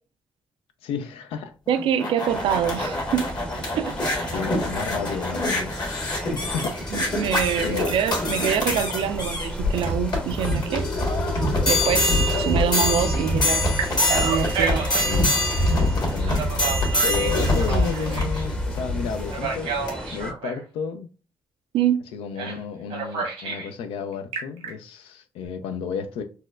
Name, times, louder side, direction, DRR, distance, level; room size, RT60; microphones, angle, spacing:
voice 1, 0.8-1.5 4.3-5.7 6.3-6.7 7.6-7.9 15.0-15.4 15.7-16.6 17.0-19.7 20.1-21.1 22.1-26.2, left 6 dB, 80° left, 0.4 m, -32 dB
sound 1, 1.7-19.3 19.9-20.0, left 1 dB, 50° left, 1.4 m, -24 dB
voice 2, 1.7-3.3 3.8-4.3 6.9-10.9 11.7-13.7 14.1-14.8 21.7-22.0, right 9 dB, 70° right, 0.4 m, -25 dB
sound 2, 2.3-20.3, equal, 10° left, 0.6 m, -36 dB
Telephone, 10.7-12.9 13.5-15.2 16.2-18.4 19.3-20.6 22.4-22.6 22.9-23.7 24.1-24.7, right 3 dB, 90° right, 1.1 m, -31 dB
4.1 x 2.1 x 2.4 m
supercardioid pair, 55°, 9 cm